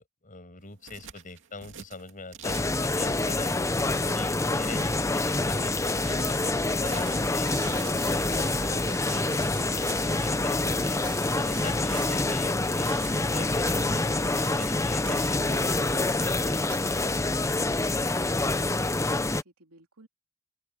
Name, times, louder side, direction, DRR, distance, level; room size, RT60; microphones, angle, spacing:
voice 1, 0.0-3.7 4.1-9.2 9.6-11.0 11.4-17.1, left 3 dB, 40° left, 7.0 m, -43 dB
sound 1, 0.6-17.4, right 6 dB, 60° right, 2.5 m, -46 dB
sound 2, 2.4-19.4, left 2 dB, 15° left, 0.7 m, -26 dB
sound 3, 7.0-12.3, right 6 dB, 20° right, 7.0 m, -46 dB
voice 2, 18.2-20.1, right 1 dB, 75° right, 3.3 m, -55 dB
open air
head